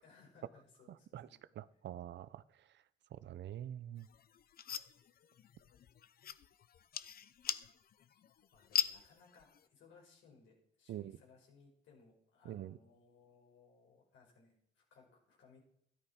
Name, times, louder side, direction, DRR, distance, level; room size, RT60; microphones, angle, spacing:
voice 1, 0.0-1.4 1.7-1.8 8.5-15.6, left 4 dB, 75° left, 5.1 m, -64 dB
voice 2, 1.5-2.7 3.1-4.1 4.7-4.8 10.9-11.2 12.4-12.8, right 11 dB, 65° right, 0.6 m, -46 dB
sound 1, 4.0-9.7, left 9 dB, 50° left, 0.6 m, -42 dB
13.0 x 11.0 x 4.3 m
cardioid pair, 90°, 20 cm